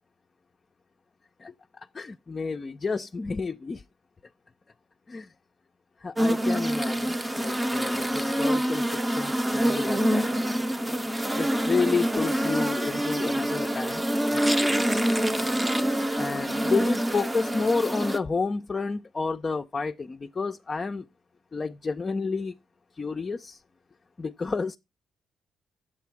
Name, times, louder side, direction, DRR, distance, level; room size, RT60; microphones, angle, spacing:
voice 1, 1.4-3.8 5.1-5.3 6.0-10.3 11.4-15.0 16.1-21.1 21.5-22.6 23.0-23.6 24.2-24.8, left 4 dB, 30° left, 0.5 m, -31 dB
sound 1, 6.2-18.2, right 1 dB, 10° right, 0.6 m, -26 dB
8.2 x 7.6 x 4.6 m
cardioid pair, 90°, 0 cm